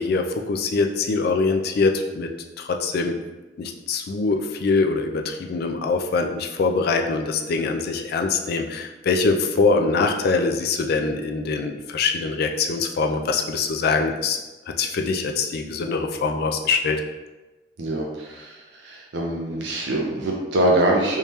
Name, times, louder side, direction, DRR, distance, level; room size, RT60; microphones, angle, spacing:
voice 1, 0.0-2.3 2.6-3.1 3.6-14.4 14.8-17.0, left 4 dB, 60° left, 4 dB, 0.4 m, -23 dB
voice 2, 17.8-18.5 18.8-21.2, right 1 dB, 70° right, -1 dB, 0.5 m, -23 dB
3.5 x 2.8 x 3.0 m, 1.1 s
head